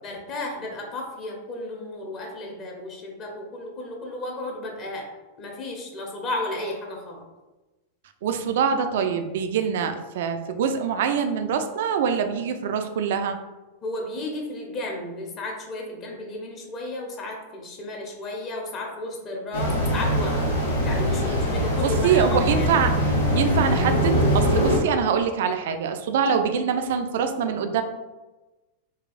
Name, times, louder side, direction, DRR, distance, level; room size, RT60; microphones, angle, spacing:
voice 1, 0.0-5.1 5.4-7.2 13.8-20.5 20.8-22.7, left 2 dB, 35° left, 0 dB, 0.7 m, -33 dB
voice 2, 8.2-13.4 21.8-22.9 23.3-27.8, right 7 dB, 55° right, 7 dB, 0.3 m, -24 dB
sound 1, 19.5-24.8, equal, 80° left, 0.8 m, -22 dB
4.0 x 2.3 x 2.4 m, 1.1 s
figure-of-eight pair, 90°, 0 cm